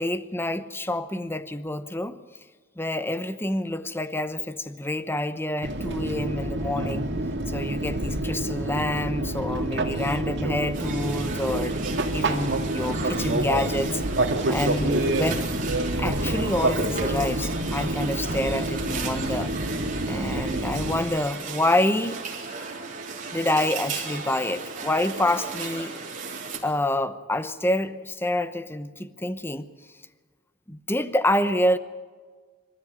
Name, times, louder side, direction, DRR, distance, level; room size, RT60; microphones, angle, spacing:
voice 1, 0.0-2.2 2.8-7.1 7.5-11.7 12.1-14.0 14.5-15.5 16.0-19.5 20.0-22.2 23.3-25.9 26.6-29.7 30.7-31.8, left 1 dB, 10° left, 12 dB, 0.9 m, -27 dB
Fixed-wing aircraft airplane, 5.6-21.0, right 1 dB, 60° right, 2.2 m, -27 dB
sound 1, 10.7-26.6, right 4 dB, 45° right, 3.6 m, -35 dB
25.5 x 13.5 x 9.5 m, 1.5 s
head